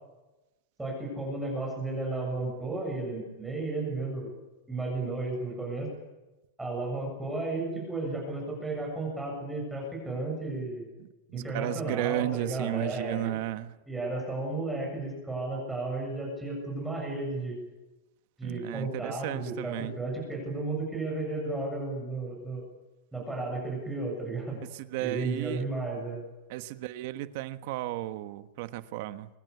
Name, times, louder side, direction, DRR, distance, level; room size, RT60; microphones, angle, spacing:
voice 1, 0.8-4.3 4.7-5.9 6.6-10.9 11.3-13.4 13.9-17.6 18.4-22.6 23.1-24.6 25.0-26.2, right 2 dB, 5° right, 7.4 m, -33 dB
voice 2, 11.0-13.7 18.4-19.9 24.9-25.6 26.5-29.3, right 15 dB, 50° right, 1.2 m, -34 dB
24.5 x 20.5 x 8.4 m
supercardioid pair, 165°, 0 cm